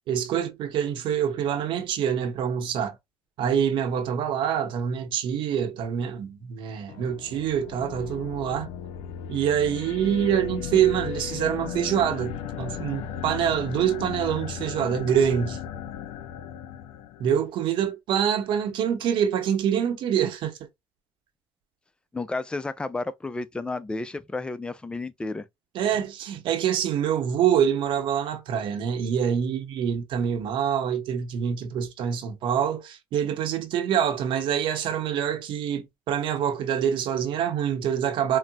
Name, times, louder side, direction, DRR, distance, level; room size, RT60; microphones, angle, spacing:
voice 1, 0.1-3.0 3.4-8.7 9.3-15.6 17.2-20.6 25.7-38.4, right 9 dB, 65° right, 0.8 m, -25 dB
sound 1, 6.9-17.4, left 9 dB, 80° left, 0.4 m, -36 dB
voice 2, 22.1-25.5, left 3 dB, 10° left, 0.4 m, -32 dB
3.9 x 2.0 x 2.2 m
supercardioid pair, 95°, 9 cm